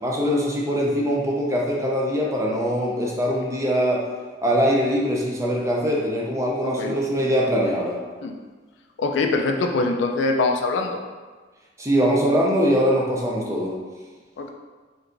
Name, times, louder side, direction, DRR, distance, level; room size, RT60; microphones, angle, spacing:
voice 1, 0.0-4.0 4.4-8.0 11.8-13.8, equal, 15° right, -2 dB, 0.5 m, -22 dB
voice 2, 6.6-7.0 8.2-8.4 9.0-11.0 14.4-14.5, left 3 dB, 80° left, 3 dB, 0.4 m, -23 dB
4.5 x 2.5 x 2.5 m, 1.4 s
head